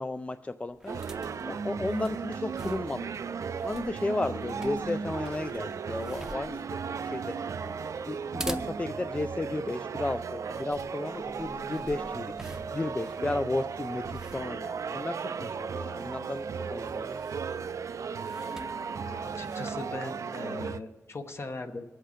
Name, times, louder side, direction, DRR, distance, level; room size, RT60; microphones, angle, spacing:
voice 1, 0.0-3.1 3.6-7.5 8.0-17.2, left 2 dB, 25° left, 10 dB, 0.3 m, -34 dB
sound 1, 0.7-20.0, right 1 dB, 10° right, 0.7 m, -47 dB
sound 2, 0.9-20.8, right 6 dB, 70° right, 0.4 m, -36 dB
sound 3, 5.2-14.6, left 2 dB, 75° left, 2.6 m, -56 dB
voice 2, 19.0-21.8, left 3 dB, 50° left, 7 dB, 1.0 m, -39 dB
22.5 x 7.9 x 5.1 m, 1.2 s
wide cardioid pair, 115°, 6 cm